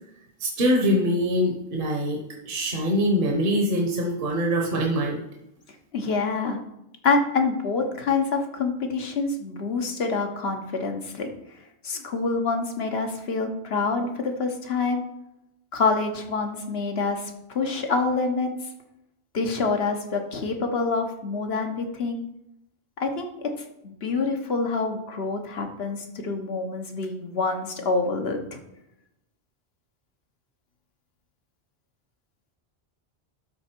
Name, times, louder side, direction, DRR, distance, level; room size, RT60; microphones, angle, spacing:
voice 1, 0.4-2.2 2.5-5.2, equal, 55° right, 0 dB, 1.3 m, -23 dB
voice 2, 5.9-6.6 7.0-11.3 11.8-15.0 15.7-18.5 19.3-22.2 23.0-23.5 23.8-28.6, left 4 dB, 70° left, 5 dB, 1.4 m, -26 dB
12.5 x 4.2 x 4.5 m, 0.86 s
omnidirectional pair, 1.1 m